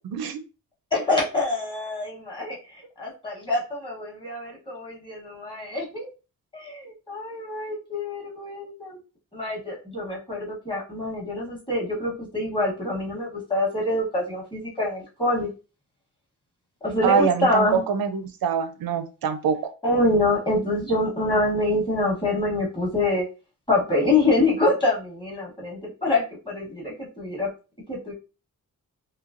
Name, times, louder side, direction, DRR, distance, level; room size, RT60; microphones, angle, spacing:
voice 1, 0.9-2.6 3.0-6.1 6.5-9.0 9.3-15.5 16.8-17.8 19.8-23.2 23.7-27.5 27.9-28.1, left 2 dB, 15° left, -3 dB, 1.0 m, -25 dB
voice 2, 17.0-19.7, right 6 dB, 90° right, 10 dB, 0.5 m, -24 dB
3.1 x 2.8 x 2.4 m, 0.32 s
wide cardioid pair, 175°, 35 cm